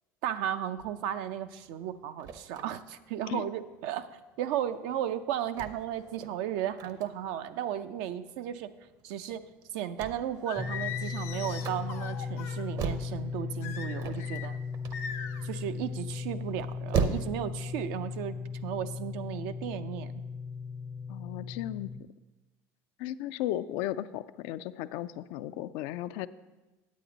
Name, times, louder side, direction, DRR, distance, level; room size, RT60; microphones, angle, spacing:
voice 1, 0.2-4.1 4.4-8.7 9.0-9.4 9.7-14.6 15.4-18.4 18.6-20.2, right 10 dB, 75° right, 11 dB, 0.5 m, -35 dB
sound 1, 0.8-17.6, right 6 dB, 50° right, 0.8 m, -38 dB
Singing, 10.5-12.6 13.6-14.5 14.9-15.4, left 8 dB, 90° left, 0.8 m, -40 dB
sound 2, 10.6-22.0, left 5 dB, ahead, 0.4 m, -37 dB
voice 2, 21.1-21.9 23.0-26.3, left 13 dB, 75° left, 13 dB, 0.4 m, -35 dB
9.4 x 8.4 x 3.9 m, 1.1 s
supercardioid pair, 95°, 8 cm